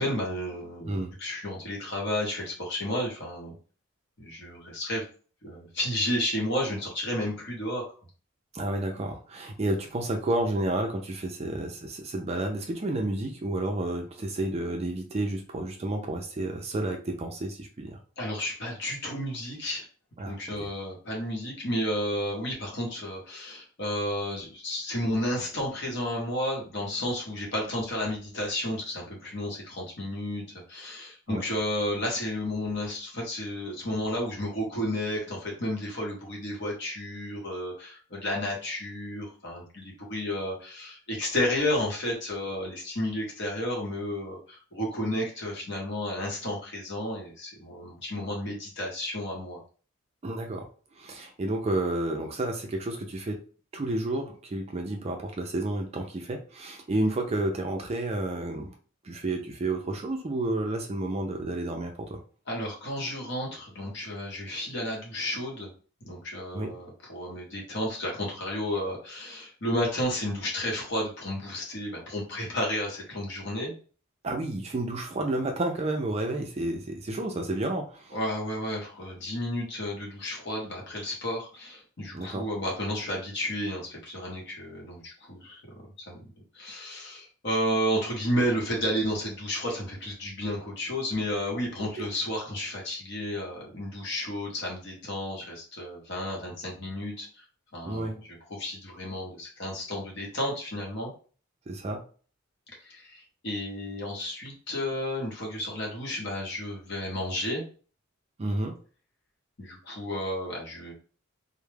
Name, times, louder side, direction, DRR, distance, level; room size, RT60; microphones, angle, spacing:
voice 1, 0.0-3.6 4.2-5.0 5.4-7.8 18.2-19.8 20.2-49.6 62.5-65.7 66.0-73.7 78.1-85.6 86.1-86.2 86.5-97.4 97.7-101.1 102.8-107.6 109.6-110.9, left 1 dB, 55° left, -2 dB, 0.9 m, -32 dB
voice 2, 8.5-18.0 20.2-20.3 31.3-31.4 50.2-50.7 51.0-53.4 53.7-58.7 59.0-62.2 66.5-66.7 74.2-78.2 82.1-82.4 91.8-92.1 97.8-98.1 101.7-102.0 108.4-108.8, right 2 dB, 30° right, 3 dB, 0.3 m, -31 dB
2.2 x 2.0 x 3.1 m, 0.39 s
head